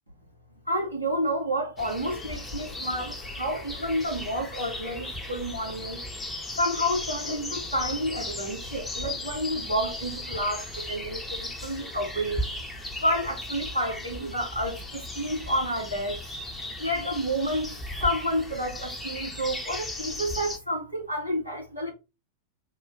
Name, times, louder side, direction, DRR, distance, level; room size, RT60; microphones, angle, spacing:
voice 1, 0.7-6.0 6.6-12.4 13.0-16.2 16.8-17.7 18.0-21.9, equal, 90° right, 2.1 m, -30 dB
sound 1, 1.8-20.6, left 2 dB, 5° left, 0.9 m, -36 dB
3.6 x 2.5 x 4.0 m
figure-of-eight pair, 90°, 0 cm